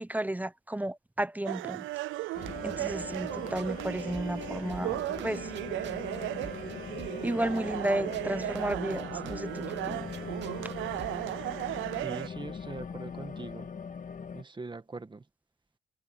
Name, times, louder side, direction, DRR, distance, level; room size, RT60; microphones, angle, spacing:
voice 1, 0.0-1.9 2.6-5.5 7.2-10.1, right 1 dB, 10° right, 0.8 m, -33 dB
sound 1, 1.5-12.3, right 17 dB, 80° right, 0.4 m, -36 dB
sound 2, 2.3-14.4, left 6 dB, 40° left, 2.2 m, -41 dB
sound 3, 2.4-11.4, right 9 dB, 60° right, 2.8 m, -50 dB
voice 2, 12.0-13.7 14.3-15.3, right 3 dB, 25° right, 1.9 m, -42 dB
cardioid pair, 90°, 20 cm